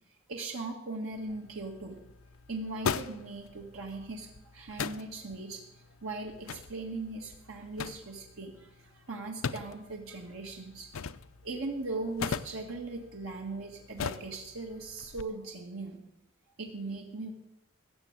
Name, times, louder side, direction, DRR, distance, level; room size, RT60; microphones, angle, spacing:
voice 1, 0.3-2.0 2.5-10.9 11.4-16.0 16.6-17.3, right 3 dB, 75° right, 1 dB, 1.8 m, -39 dB
sound 1, 1.1-15.2, left 6 dB, 85° left, 0.6 m, -41 dB
16.0 x 6.9 x 8.8 m, 0.85 s
head